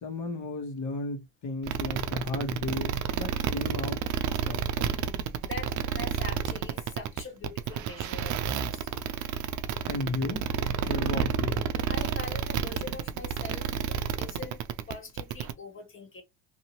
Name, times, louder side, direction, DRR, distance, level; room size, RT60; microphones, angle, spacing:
voice 1, 0.0-4.0 4.3-5.0 9.9-10.4 10.9-11.6, left 3 dB, 45° left, 1.4 m, -34 dB
sound 1, 1.6-15.5, right 8 dB, 45° right, 0.5 m, -30 dB
voice 2, 5.1-8.9 11.2-11.3 11.9-16.2, left 3 dB, 30° left, 1.5 m, -43 dB
2.7 x 2.7 x 2.9 m
supercardioid pair, 85°, 42 cm